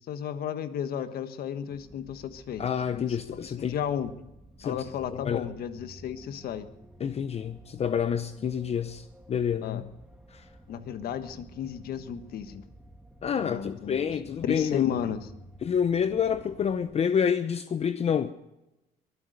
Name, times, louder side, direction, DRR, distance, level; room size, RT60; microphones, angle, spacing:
voice 1, 0.1-2.6 2.9-3.2 3.6-4.1 4.6-6.7 9.6-9.8 10.7-12.6 13.3-14.1 14.4-15.3, left 9 dB, 65° left, 1.4 m, -33 dB
sound 1, 1.7-17.0, right 1 dB, 5° right, 1.7 m, -52 dB
voice 2, 2.6-3.8 4.6-4.8 5.1-5.5 7.0-9.8 10.3-10.4 13.2-14.9 15.6-18.3, left 7 dB, 40° left, 0.7 m, -28 dB
22.5 x 9.5 x 6.6 m
cardioid pair, 110°, 17 cm